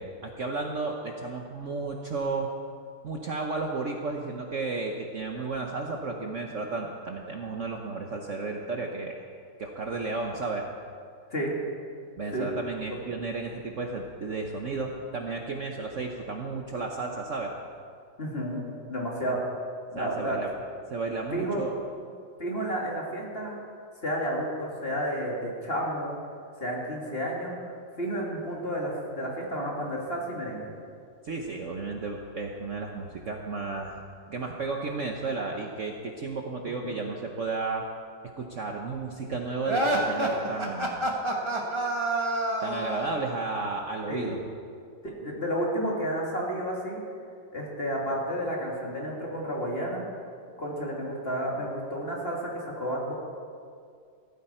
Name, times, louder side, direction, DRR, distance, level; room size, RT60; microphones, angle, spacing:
voice 1, 0.0-2.5 3.0-9.2 9.6-10.7 12.2-17.5 20.0-20.5 20.9-21.7 31.2-37.8 38.4-41.1 42.6-44.4, right 3 dB, 50° right, 1 dB, 1.1 m, -33 dB
voice 2, 18.2-18.6 18.9-19.5 19.9-20.4 21.3-21.6 22.4-23.6 24.0-26.2 26.6-30.7 36.6-36.9 44.1-44.4 45.0-47.0 47.5-50.0 50.6-53.1, equal, 30° left, -3 dB, 2.7 m, -31 dB
sound 1, 39.6-43.2, right 1 dB, 15° right, 1.4 m, -27 dB
16.5 x 14.0 x 4.4 m, 2.2 s
omnidirectional pair, 2.0 m